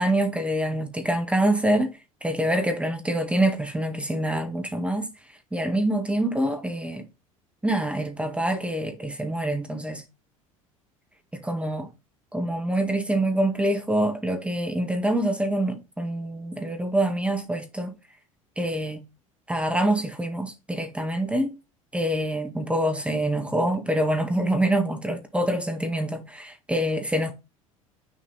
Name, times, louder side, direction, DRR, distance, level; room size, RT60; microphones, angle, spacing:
voice 1, 0.0-5.1 5.5-7.1 7.6-10.0 11.3-11.9 12.3-17.9 18.6-19.0 19.5-21.6 21.9-27.3, right 1 dB, 5° right, 1.8 m, -25 dB
6.6 x 3.9 x 4.2 m
figure-of-eight pair, 70°, 18 cm